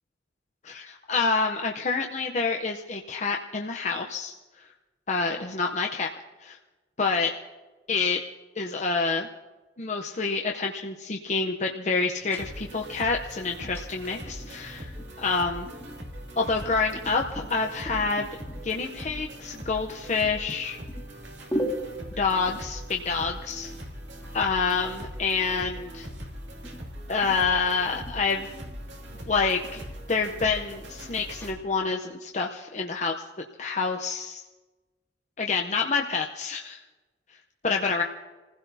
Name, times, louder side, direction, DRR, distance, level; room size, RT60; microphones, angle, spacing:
voice 1, 0.6-4.3 5.1-6.1 6.4-6.6 7.0-7.3 7.9-8.2 8.6-9.3 9.8-15.7 16.4-18.3 18.6-20.8 22.2-23.7 24.3-26.1 27.1-28.5 29.3-29.8 30.1-33.1 33.6-34.4 35.4-36.8 37.6-38.0, left 4 dB, 40° left, 1 dB, 0.7 m, -27 dB
sound 1, 12.2-31.6, equal, 15° left, 1.9 m, -42 dB
sound 2, 12.4-31.5, equal, 80° right, 2.4 m, -41 dB
28.0 x 16.0 x 2.7 m, 1.2 s
head